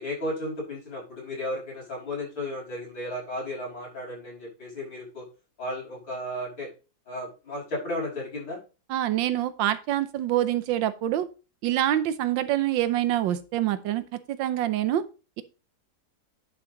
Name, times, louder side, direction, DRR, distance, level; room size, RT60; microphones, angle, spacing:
voice 1, 0.0-5.3 5.6-6.7 7.1-8.6, left 1 dB, 80° left, -4 dB, 6.4 m, -34 dB
voice 2, 8.9-11.3 11.6-15.0, right 12 dB, 90° right, 12 dB, 1.5 m, -26 dB
10.0 x 5.8 x 3.8 m, 0.33 s
omnidirectional pair, 2.0 m